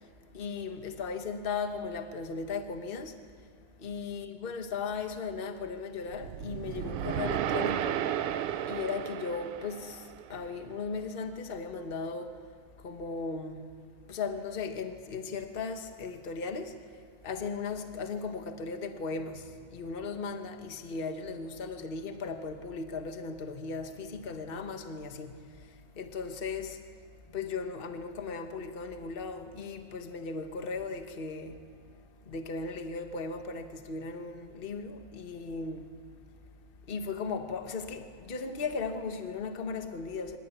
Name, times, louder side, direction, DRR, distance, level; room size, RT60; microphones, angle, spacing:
voice 1, 0.3-3.2 3.8-8.1 8.7-12.3 12.8-13.7 14.1-16.8 17.2-25.7 25.9-26.8 27.3-31.6 32.3-35.9 36.9-40.4, left 4 dB, 55° left, 0.6 m, -37 dB
sound 1, 6.1-10.4, right 10 dB, 70° right, 1.3 m, -33 dB
24.0 x 16.0 x 9.2 m
omnidirectional pair, 3.3 m